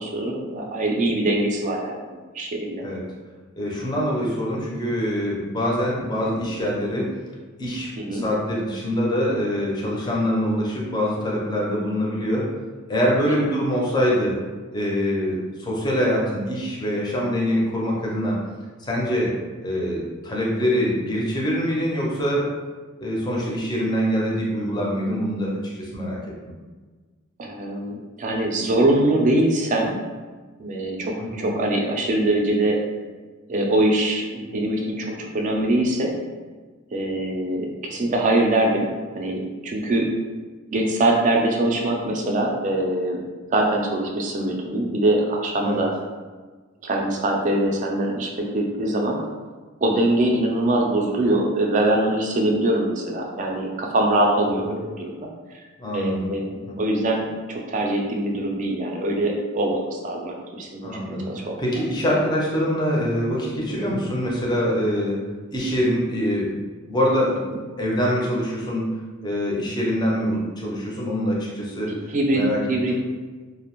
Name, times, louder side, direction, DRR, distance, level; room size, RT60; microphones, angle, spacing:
voice 1, 0.0-2.0 2.3-2.8 8.0-8.3 13.4-13.5 27.4-30.0 30.6-32.8 33.5-36.1 36.9-38.9 39.1-40.1 40.7-43.2 43.5-45.9 46.8-49.2 49.8-55.1 55.9-56.5 56.8-60.9 61.2-61.6 67.5-67.6 72.1-73.0, right 1 dB, 35° right, 0 dB, 0.3 m, -23 dB
voice 2, 3.6-7.1 7.6-12.5 12.9-14.4 14.7-18.4 18.8-19.3 19.6-22.5 23.0-26.2 31.3-31.5 45.6-45.8 54.6-54.7 55.8-56.3 56.7-56.8 60.8-61.3 61.6-65.2 65.5-66.5 66.9-67.4 67.8-68.9 69.2-72.0 72.3-72.6 72.9-73.0, equal, 20° left, -4 dB, 0.5 m, -24 dB
2.5 x 2.0 x 2.9 m, 1.4 s
head